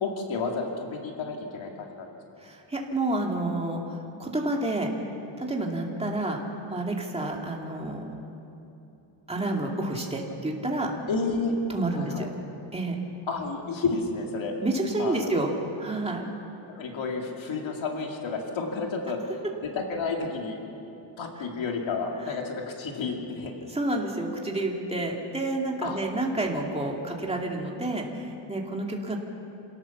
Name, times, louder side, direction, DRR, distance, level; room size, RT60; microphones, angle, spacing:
voice 1, 0.0-2.1 11.1-11.5 11.9-12.3 13.3-14.6 15.0-15.4 16.7-20.6 21.2-23.5 25.8-26.0 26.7-26.8, left 4 dB, 75° left, 1 dB, 2.6 m, -31 dB
voice 2, 2.4-4.9 5.4-6.4 6.7-8.1 9.3-10.9 11.7-12.3 12.7-13.0 14.6-15.5 15.8-16.3 22.2-22.3 23.7-29.2, right 2 dB, 15° right, 0 dB, 2.4 m, -29 dB
27.5 x 17.5 x 7.2 m, 2.8 s
wide cardioid pair, 170°, 47 cm